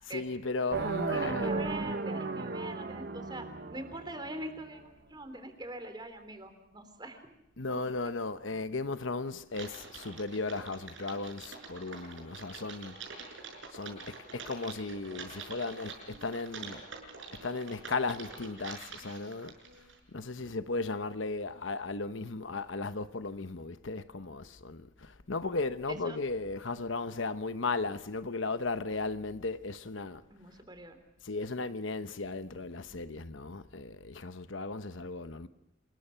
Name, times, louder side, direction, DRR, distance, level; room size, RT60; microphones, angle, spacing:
voice 1, 0.0-1.5 7.6-12.9 13.7-16.8 17.4-19.5 20.1-30.2 31.2-35.5, left 3 dB, 70° left, 1.0 m, -36 dB
sound 1, 0.7-4.7, right 3 dB, 50° right, 1.2 m, -35 dB
voice 2, 1.1-4.8 5.1-7.2 7.7-7.8 20.4-20.5 25.9-26.2 30.3-31.0, right 1 dB, 20° right, 3.4 m, -43 dB
Typing, 9.5-20.0, right 4 dB, 70° right, 6.4 m, -46 dB
28.0 x 21.0 x 5.8 m
head